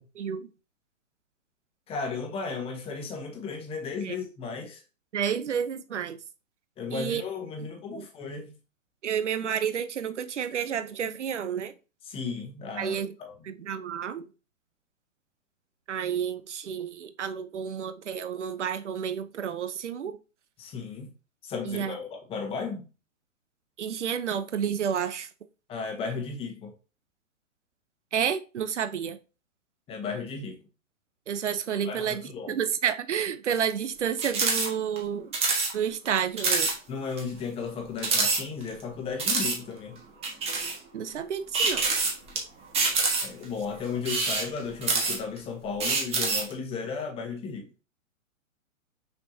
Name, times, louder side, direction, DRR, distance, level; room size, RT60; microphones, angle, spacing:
voice 1, 0.1-0.5 4.0-4.2 5.1-6.2 6.9-7.2 7.6-8.1 9.0-11.7 12.8-13.1 13.4-14.3 15.9-20.2 21.6-22.0 23.8-25.3 28.1-29.2 31.3-32.2 32.5-35.3 35.7-36.7 40.9-41.8, right 8 dB, 60° right, 0.8 m, -30 dB
voice 2, 1.9-4.8 6.8-8.5 12.1-13.3 20.6-21.1 21.4-22.8 25.7-26.7 29.9-30.6 31.8-32.6 36.9-40.0 43.2-47.7, left 5 dB, 15° left, 1.2 m, -35 dB
sound 1, 34.2-34.7 35.0-35.1 35.3-35.7 36.1-36.2 36.4-36.7 37.2-37.3 38.0-38.8 39.2-39.6 40.2-40.8 41.5-42.4 42.7-43.4 44.0-45.4 45.8-46.5, right 4 dB, 15° right, 1.4 m, -26 dB
6.2 x 5.8 x 2.8 m
figure-of-eight pair, 115°, 40 cm